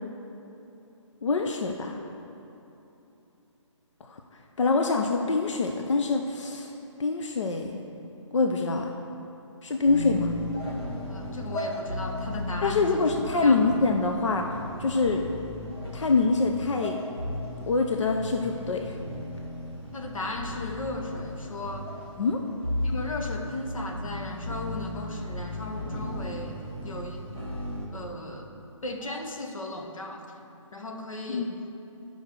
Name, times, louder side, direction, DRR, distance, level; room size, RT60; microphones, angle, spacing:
voice 1, 1.2-2.0 4.0-4.2 4.6-6.7 7.0-7.8 8.3-8.9 9.6-10.3 12.6-15.2 15.9-17.0 17.7-19.0 22.2-22.4 31.3-31.5, left 3 dB, 65° left, 3 dB, 0.6 m, -25 dB
sound 1, 9.9-27.8, left 1 dB, 50° left, 1.9 m, -35 dB
voice 2, 11.0-13.1 13.4-13.6 19.9-21.9 22.8-27.3 27.9-28.5 28.8-30.3 30.7-31.5, left 2 dB, 85° left, 3 dB, 1.2 m, -36 dB
11.5 x 5.5 x 4.6 m, 3.0 s
hypercardioid pair, 175°, 17 cm